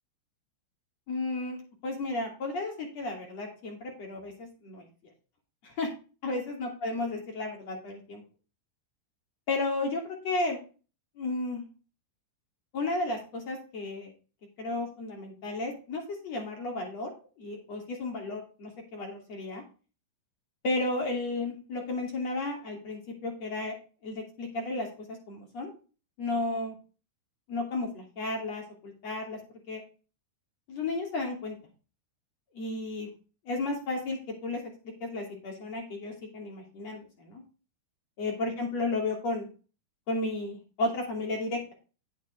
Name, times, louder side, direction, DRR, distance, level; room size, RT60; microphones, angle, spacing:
voice 1, 1.1-1.6 1.8-4.9 5.6-5.9 6.2-8.2 9.5-10.6 11.2-11.6 12.7-14.1 14.6-17.1 17.4-19.6 20.6-23.7 24.0-25.7 26.2-26.7 27.5-29.4 29.7-29.8 30.7-31.6 32.5-33.1 33.4-34.6 35.0-37.4 38.2-39.5 40.1-41.7, left 2 dB, 40° left, 1 dB, 2.8 m, -33 dB
9.3 x 6.1 x 5.1 m, 0.35 s
supercardioid pair, 175°, 0 cm